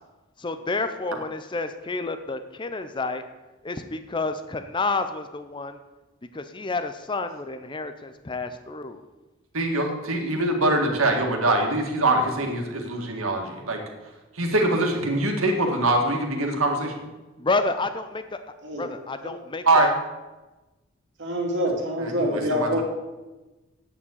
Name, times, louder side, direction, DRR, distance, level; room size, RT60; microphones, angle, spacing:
voice 1, 0.4-3.2 3.6-5.8 6.3-9.0 17.4-18.4 18.8-19.9, left 3 dB, 25° left, 9 dB, 0.5 m, -29 dB
voice 2, 9.5-13.8 14.4-16.9 19.7-19.9 22.0-22.8, right 2 dB, 90° right, 3 dB, 2.0 m, -23 dB
voice 3, 21.2-22.8, equal, 60° right, 0 dB, 2.6 m, -26 dB
8.5 x 7.1 x 8.4 m, 1.1 s
head